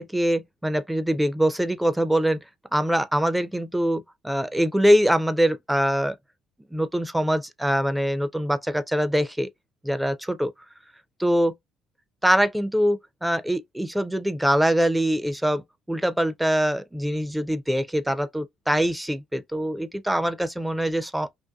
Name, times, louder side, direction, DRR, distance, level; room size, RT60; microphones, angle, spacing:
voice 1, 0.0-2.4 2.7-6.2 6.7-9.5 9.8-10.5 11.2-11.5 12.2-21.3, equal, 5° right, 0.4 m, -23 dB
2.6 x 2.2 x 2.2 m
supercardioid pair, 70°, 0 cm